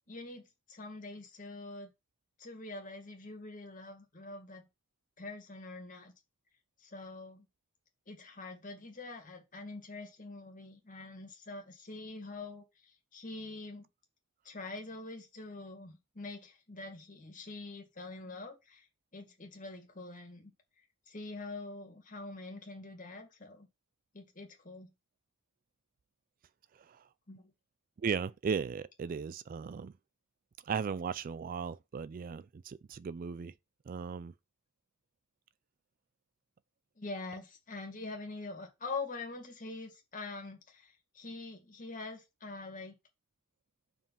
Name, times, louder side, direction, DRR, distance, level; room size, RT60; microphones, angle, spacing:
voice 1, 0.1-1.9 2.4-4.7 5.2-6.1 6.8-7.5 8.1-13.9 14.4-18.9 19.1-20.5 21.1-23.7 24.1-24.9 27.3-27.5 37.0-42.9, left 3 dB, 40° left, 2.1 m, -45 dB
voice 2, 28.0-29.9 30.7-33.5 33.9-34.3, right 6 dB, 40° right, 0.3 m, -36 dB
5.3 x 5.0 x 5.7 m
head